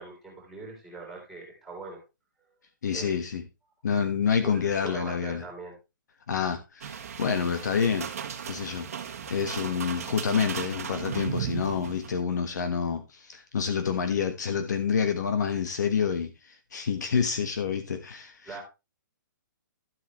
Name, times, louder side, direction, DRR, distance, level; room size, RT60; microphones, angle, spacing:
voice 1, 0.0-2.0 2.9-3.1 4.4-5.8 18.5-18.6, right 3 dB, ahead, 3.4 m, -41 dB
voice 2, 2.8-3.4 3.8-5.4 6.3-8.1 8.4-8.9 9.3-18.6, left 6 dB, 60° left, 1.4 m, -28 dB
sound 1, 6.8-12.2, right 8 dB, 45° right, 1.4 m, -36 dB
12.5 x 8.0 x 3.1 m
hypercardioid pair, 175°, 11 cm